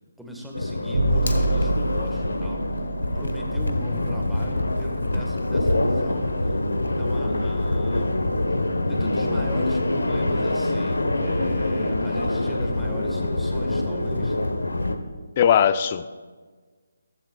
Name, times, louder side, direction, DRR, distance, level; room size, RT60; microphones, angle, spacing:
voice 1, 0.2-2.6 3.1-8.1 8.9-14.4, equal, ahead, -1 dB, 1.3 m, -38 dB
sound 1, 0.5-15.0, left 2 dB, 85° left, 0.9 m, -25 dB
Bowed string instrument, 0.9-7.4, right 2 dB, 70° right, 3.1 m, -30 dB
Fire, 1.1-2.1, left 3 dB, 70° left, 1.3 m, -34 dB
voice 2, 15.4-16.2, left 8 dB, 35° left, 13 dB, 0.4 m, -19 dB
14.5 x 13.5 x 2.3 m, 1.5 s
figure-of-eight pair, 150°, 0 cm